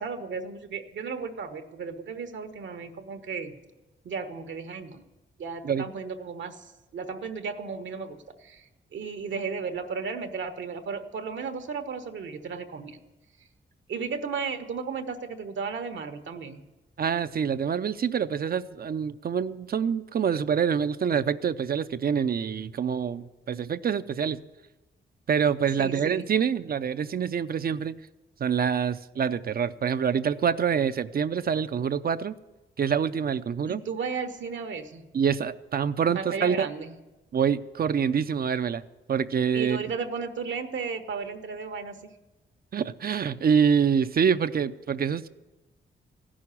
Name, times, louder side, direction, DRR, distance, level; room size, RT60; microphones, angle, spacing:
voice 1, 0.0-3.6 4.0-5.0 5.4-6.7 6.9-13.0 13.9-16.7 25.8-26.3 33.7-35.0 36.1-36.9 39.5-42.2, right 5 dB, 75° right, 1.2 m, -34 dB
voice 2, 17.0-24.4 25.3-28.0 28.4-32.3 32.8-33.8 35.1-36.7 37.3-39.8 42.7-45.3, right 7 dB, 50° right, 0.5 m, -26 dB
15.0 x 6.3 x 9.8 m
cardioid pair, 80°, 19 cm